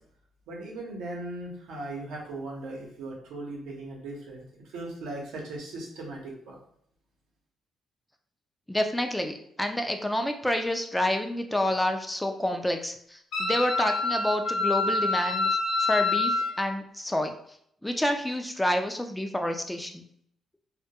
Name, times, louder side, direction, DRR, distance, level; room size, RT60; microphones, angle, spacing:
voice 1, 0.5-6.6, right 2 dB, 90° right, -2 dB, 0.7 m, -38 dB
voice 2, 8.7-15.5 15.8-17.3 17.8-20.0, left 1 dB, 5° left, 5 dB, 0.3 m, -28 dB
Wind instrument woodwind instrument, 13.3-16.5, left 3 dB, 75° left, 0.6 m, -26 dB
2.2 x 2.2 x 2.8 m, 0.68 s
cardioid pair, 90°, 0 cm